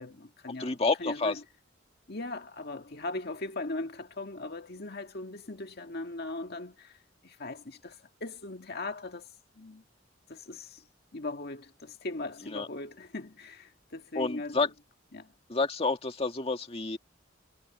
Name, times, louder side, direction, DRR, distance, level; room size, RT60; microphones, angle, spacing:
voice 1, 0.0-1.4 2.1-9.3 9.6-9.8 10.3-10.8 11.1-14.7 15.1-15.3, left 2 dB, 55° left, 2.0 m, -39 dB
voice 2, 0.6-1.3 12.5-12.7 14.2-14.7 15.5-17.0, left 3 dB, 30° left, 1.9 m, -29 dB
head